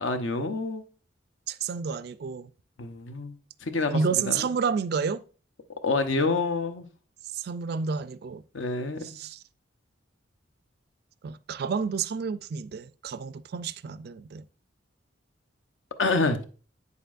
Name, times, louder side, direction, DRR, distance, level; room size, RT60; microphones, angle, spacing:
voice 1, 0.0-0.8 2.8-3.3 3.6-4.5 5.8-6.9 8.5-9.2 16.0-16.4, left 3 dB, 75° left, 0.9 m, -27 dB
voice 2, 1.5-2.5 3.9-5.2 7.3-8.4 9.0-9.4 11.2-14.4, right 5 dB, 50° right, 0.3 m, -30 dB
8.4 x 6.7 x 2.5 m
head